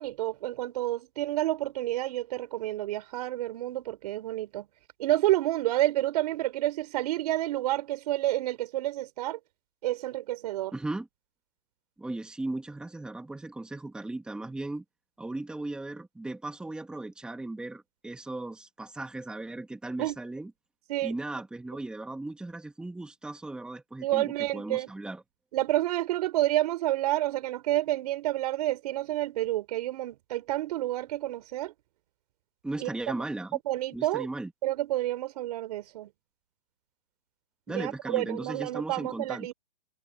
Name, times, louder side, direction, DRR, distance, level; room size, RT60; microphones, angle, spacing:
voice 1, 0.0-4.7 5.0-9.4 9.8-10.7 20.0-20.2 20.9-21.1 24.0-24.9 25.5-31.7 32.8-32.9 33.7-34.3 34.6-36.1 37.7-39.5, right 15 dB, 40° right, 4.4 m, -29 dB
voice 2, 10.7-11.1 12.0-14.8 15.2-20.5 21.0-25.2 32.6-33.6 33.9-34.5 37.7-39.5, right 2 dB, 5° right, 2.4 m, -37 dB
hypercardioid pair, 155°, 29 cm